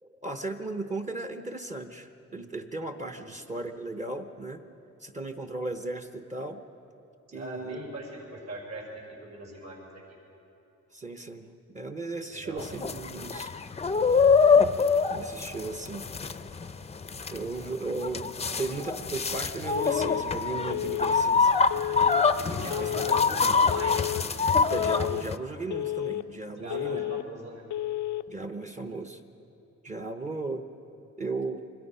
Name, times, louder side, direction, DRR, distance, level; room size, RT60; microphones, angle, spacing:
voice 1, 0.0-4.6 5.0-6.6 7.3-7.9 10.9-13.5 15.1-16.1 17.3-21.6 22.8-22.9 23.3-23.5 24.7-27.1 28.3-29.2 29.8-30.7 31.2-31.6, right 2 dB, 25° right, 6 dB, 0.9 m, -36 dB
voice 2, 7.3-8.8 9.2-10.2 12.3-12.7 22.4-24.1 26.6-27.6, right 1 dB, 65° right, -1 dB, 6.3 m, -40 dB
sound 1, 12.6-25.4, left 5 dB, 20° left, 0.6 m, -25 dB
Telephone, 19.7-20.2 20.7-21.2 21.7-22.2 22.7-23.2 23.7-24.2 24.7-25.2 25.7-26.2 26.7-27.2 27.7-28.2, left 14 dB, 75° left, 0.5 m, -31 dB
25.0 x 21.5 x 5.6 m, 2.9 s
wide cardioid pair, 145°, 30 cm